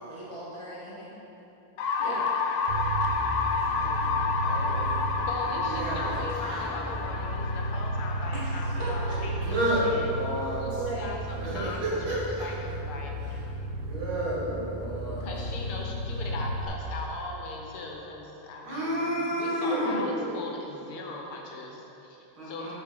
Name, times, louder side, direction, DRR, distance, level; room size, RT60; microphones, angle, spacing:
voice 1, 0.0-1.2 2.0-2.3 8.3-9.2 10.6-11.1 13.8-13.9 19.0-19.1 19.4-20.5, right 2 dB, 20° left, -7 dB, 0.9 m, -37 dB
sound 1, 1.8-9.6, left 4 dB, 70° left, 1.2 m, -30 dB
voice 2, 2.6-3.0 3.4-5.1 5.7-6.8 9.4-10.6 11.3-12.6 13.9-15.3 18.6-20.0 22.4-22.7, right 1 dB, 70° right, -7 dB, 3.0 m, -31 dB
sound 2, 2.7-16.7, right 1 dB, 55° right, 1.5 m, -34 dB
voice 3, 5.3-10.1 10.6-13.4 15.2-22.2 22.4-22.7, left 2 dB, 90° left, 0 dB, 1.9 m, -39 dB
8.3 x 5.2 x 5.2 m, 3.0 s
omnidirectional pair, 2.3 m